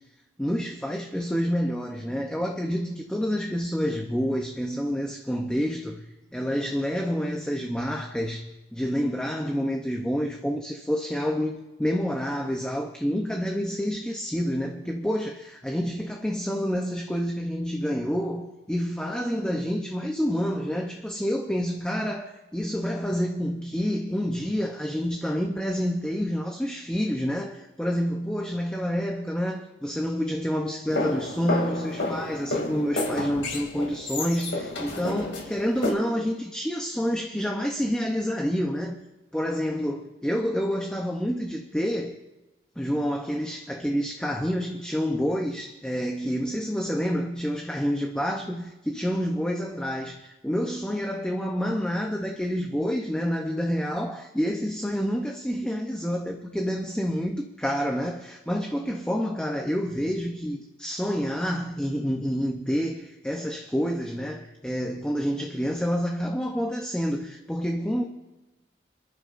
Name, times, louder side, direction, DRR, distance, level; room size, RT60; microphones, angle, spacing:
voice 1, 0.4-39.0 39.3-42.2 42.8-68.0, equal, 5° left, 0.7 m, -28 dB
sound 1, 30.9-35.9, left 2 dB, 70° left, 2.6 m, -30 dB
28.0 x 11.5 x 2.6 m
head